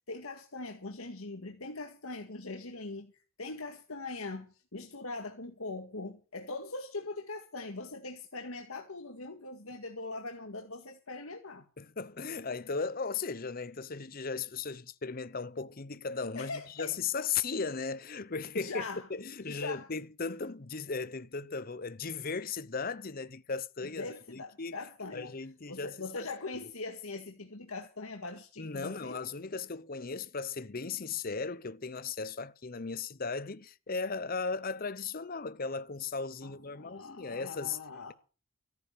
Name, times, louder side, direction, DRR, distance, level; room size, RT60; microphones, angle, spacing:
voice 1, 0.1-3.1 3.4-11.6 16.4-16.9 18.5-19.1 19.4-19.9 23.8-25.3 25.7-29.2 36.4-38.1, left 3 dB, 85° left, 2.0 m, -41 dB
voice 2, 11.8-18.8 19.1-24.8 25.1-26.3 26.6-26.7 28.6-37.8, left 5 dB, 45° left, 0.8 m, -37 dB
14.0 x 9.5 x 6.9 m
head